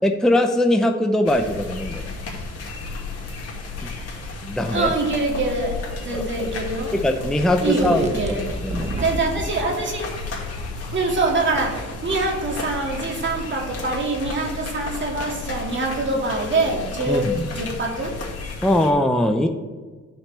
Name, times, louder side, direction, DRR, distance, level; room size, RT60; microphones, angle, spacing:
voice 1, 0.0-2.1 4.4-4.9 6.1-6.5 6.9-8.4 8.6-8.9 17.1-17.5 18.6-19.5, left 1 dB, ahead, 4 dB, 0.6 m, -21 dB
sound 1, 1.3-18.9, left 3 dB, 50° left, 2.2 m, -33 dB
voice 2, 4.7-7.0 7.6-8.5 9.0-10.1 10.9-18.2, right 2 dB, 40° right, 0 dB, 2.1 m, -24 dB
sound 2, 7.8-9.5, right 2 dB, 20° right, 1.0 m, -30 dB
12.5 x 6.0 x 3.3 m, 1.4 s
cardioid pair, 90°, 30 cm